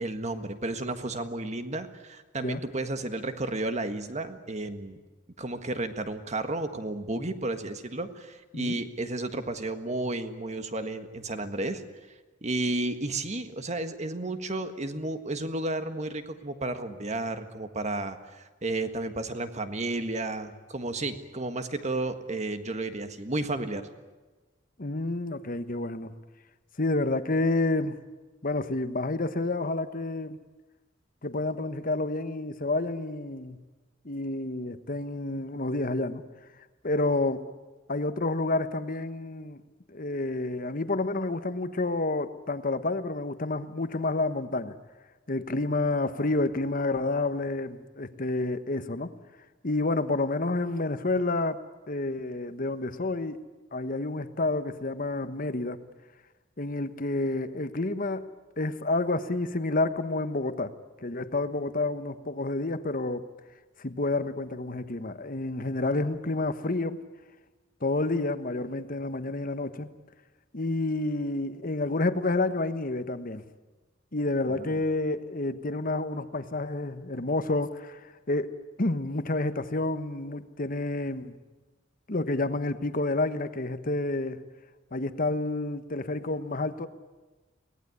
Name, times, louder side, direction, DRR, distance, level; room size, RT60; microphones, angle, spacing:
voice 1, 0.0-5.0 5.4-11.8 12.4-23.8 74.5-74.8, right 2 dB, 35° right, 9 dB, 1.6 m, -32 dB
voice 2, 24.8-26.1 26.8-28.0 28.4-30.4 31.2-33.6 34.0-36.2 36.8-37.4 37.9-39.6 39.9-44.7 45.3-49.1 49.6-51.6 51.9-53.4 53.7-55.8 56.6-58.3 58.6-60.7 61.0-63.3 63.8-67.0 67.8-69.9 70.5-73.4 74.1-78.5 78.8-81.4 82.1-84.4 84.9-86.9, left 2 dB, 45° left, 11 dB, 1.2 m, -29 dB
24.0 x 18.5 x 9.7 m, 1.2 s
head